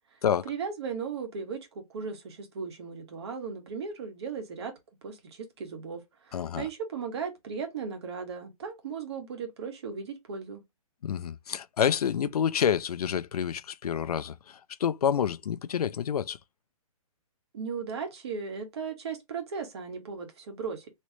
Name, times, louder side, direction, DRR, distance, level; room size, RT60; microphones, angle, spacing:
voice 1, 0.4-4.7 5.0-10.6 17.5-20.9, right 5 dB, 45° right, 1.4 m, -37 dB
voice 2, 6.3-6.7 11.0-16.4, left 8 dB, 85° left, 0.5 m, -28 dB
3.2 x 3.1 x 2.8 m
hypercardioid pair, 170°, 19 cm